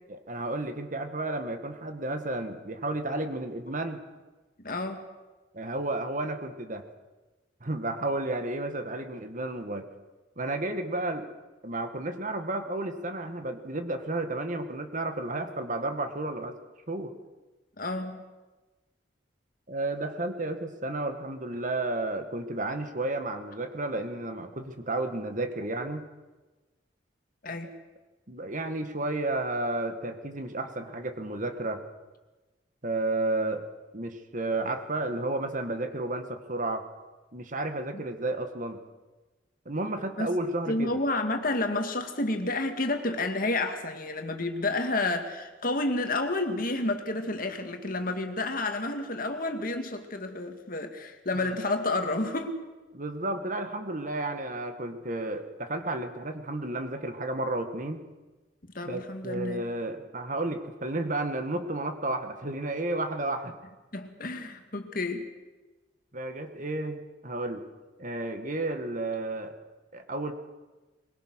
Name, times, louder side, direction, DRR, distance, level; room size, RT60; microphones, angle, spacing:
voice 1, 0.1-4.0 5.5-6.9 7.6-9.9 10.4-11.3 11.6-16.6 16.9-17.1 19.7-26.1 27.5-27.6 28.3-31.8 32.8-33.7 33.9-36.8 37.3-38.8 39.7-40.9 51.3-51.6 52.9-58.0 58.8-63.6 66.1-67.7 68.0-69.6 69.9-70.3, right 2 dB, 45° right, 7 dB, 1.8 m, -32 dB
voice 2, 4.6-5.0 17.8-18.2 27.4-27.7 37.9-38.0 40.2-40.3 40.7-52.6 58.7-59.7 63.9-65.3, left 2 dB, 50° left, 6 dB, 2.2 m, -30 dB
22.5 x 22.0 x 6.4 m, 1.2 s
head